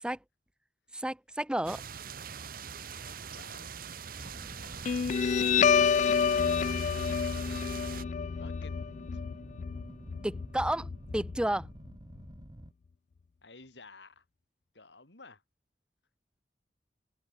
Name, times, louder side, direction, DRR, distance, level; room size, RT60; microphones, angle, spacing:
voice 1, 0.9-1.8 10.2-11.7, right 1 dB, 5° right, 0.5 m, -32 dB
sound 1, 1.7-8.0, right 7 dB, 55° right, 1.1 m, -43 dB
voice 2, 3.0-3.7 4.2-5.3 6.2-6.8 8.4-8.7 9.1-9.2 13.4-14.2 14.7-15.4, left 3 dB, 85° left, 4.3 m, -53 dB
sound 2, 4.2-12.7, right 1 dB, 25° right, 1.6 m, -49 dB
Guitar, 4.8-11.8, left 6 dB, 45° left, 0.3 m, -28 dB
head